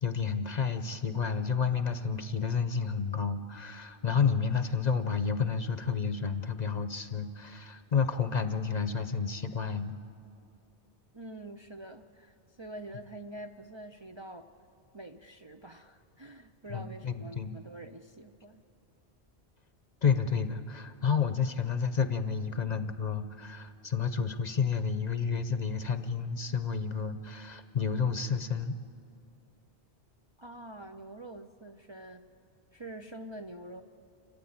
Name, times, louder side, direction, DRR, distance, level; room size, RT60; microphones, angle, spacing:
voice 1, 0.0-10.0 16.7-17.6 20.0-28.8, left 6 dB, 45° left, 10 dB, 0.8 m, -30 dB
voice 2, 11.1-14.5 14.9-18.6 30.4-32.3 32.7-33.8, right 1 dB, 30° right, 4 dB, 0.5 m, -46 dB
29.0 x 13.5 x 8.7 m, 2.6 s
omnidirectional pair, 1.1 m